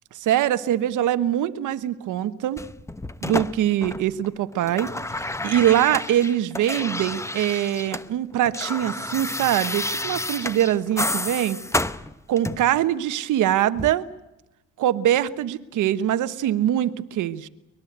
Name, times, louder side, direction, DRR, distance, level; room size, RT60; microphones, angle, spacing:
voice 1, 0.2-2.6 3.2-4.9 5.4-11.6 12.3-14.1 14.8-17.5, right 12 dB, 80° right, 13 dB, 1.2 m, -23 dB
sound 1, 2.6-4.3 4.5-8.1 8.3-12.8 13.8-13.9, left 2 dB, 10° left, 0.9 m, -30 dB
23.5 x 21.0 x 8.1 m, 0.96 s
cardioid pair, 90°, 30 cm